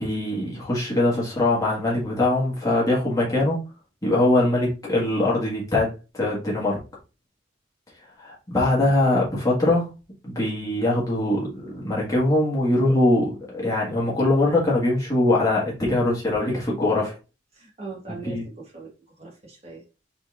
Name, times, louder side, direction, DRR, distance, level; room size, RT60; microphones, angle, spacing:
voice 1, 0.0-3.6 4.0-6.8 8.2-9.9 10.2-17.2 18.1-18.4, left 1 dB, 20° left, 1.6 m, -22 dB
voice 2, 17.5-18.9 19.2-19.9, right 4 dB, 35° right, 1.5 m, -40 dB
4.1 x 4.0 x 2.5 m
head